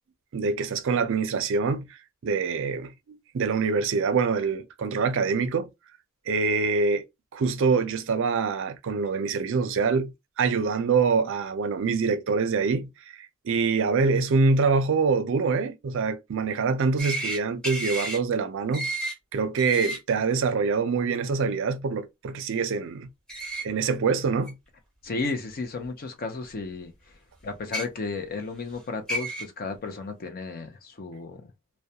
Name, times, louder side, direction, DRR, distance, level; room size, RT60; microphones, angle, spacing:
voice 1, 0.3-1.9 2.2-5.7 6.3-7.0 7.3-10.1 10.4-12.9 13.2-18.9 19.3-23.1 23.6-24.6, right 4 dB, 60° right, 0.4 m, -25 dB
sound 1, 17.0-17.4 17.6-18.2 18.7-19.1 19.6-20.0 23.3-23.6 24.5-24.6 25.8-25.9 27.6-27.8 28.7-28.8 29.1-29.4, right 1 dB, 5° left, 0.8 m, -31 dB
voice 2, 25.0-27.2 27.4-31.4, left 3 dB, 45° left, 0.5 m, -33 dB
2.2 x 2.1 x 2.7 m
head